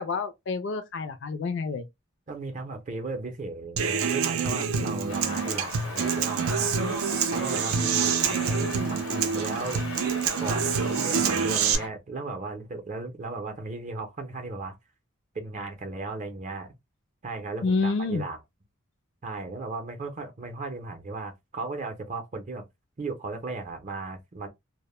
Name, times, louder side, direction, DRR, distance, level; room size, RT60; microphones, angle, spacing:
voice 1, 0.0-1.8 17.6-18.2, left 4 dB, 55° left, 0.4 m, -28 dB
voice 2, 2.3-6.7 7.3-9.8 10.4-14.8 15.3-16.7 17.2-18.4 19.2-22.6 23.0-24.5, right 3 dB, 35° right, 0.5 m, -36 dB
Human voice / Acoustic guitar, 3.8-11.7, right 6 dB, 85° right, 0.5 m, -27 dB
sound 1, 5.1-11.9, left 2 dB, 90° left, 0.8 m, -38 dB
2.0 x 2.0 x 3.0 m
head